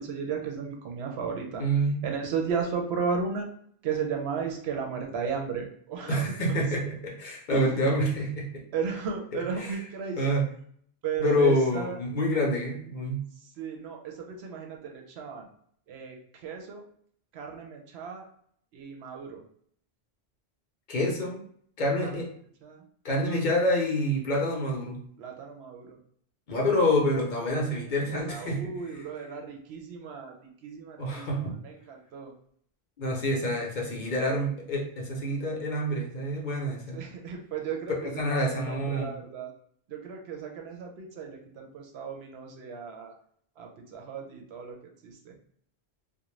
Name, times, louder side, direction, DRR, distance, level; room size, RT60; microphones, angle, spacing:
voice 1, 0.0-1.7 2.0-3.5 3.8-6.3 7.5-7.9 8.7-10.4 11.0-12.0 13.6-15.5 15.9-16.8 17.3-18.3 18.7-19.4 22.0-22.1 22.6-22.8 25.2-26.0 28.1-32.3 36.9-39.5 39.9-43.1 43.6-45.4, right 6 dB, 85° right, 2 dB, 0.9 m, -35 dB
voice 2, 1.6-2.0 6.1-8.6 9.6-9.7 10.2-10.5 11.2-13.2 20.9-21.4 21.8-22.3 23.0-25.0 26.5-28.7 31.0-31.5 33.0-37.0 38.0-39.1, equal, 55° left, -1 dB, 0.7 m, -27 dB
2.5 x 2.2 x 3.1 m, 0.62 s
omnidirectional pair, 1.1 m